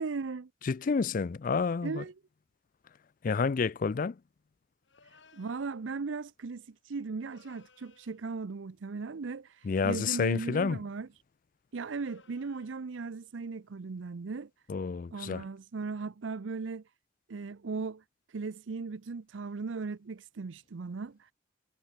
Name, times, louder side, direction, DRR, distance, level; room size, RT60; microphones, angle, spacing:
voice 1, 0.0-0.5 1.8-2.1 5.0-11.1 11.7-14.5 15.1-16.8 17.3-21.3, right 4 dB, 75° right, 0.6 m, -37 dB
voice 2, 0.6-2.0 3.2-4.2 9.6-10.8 14.7-15.5, left 5 dB, 45° left, 0.4 m, -29 dB
sound 1, 4.9-5.8 7.2-8.2 9.6-10.8 11.8-12.8, left 4 dB, 70° left, 6.1 m, -60 dB
head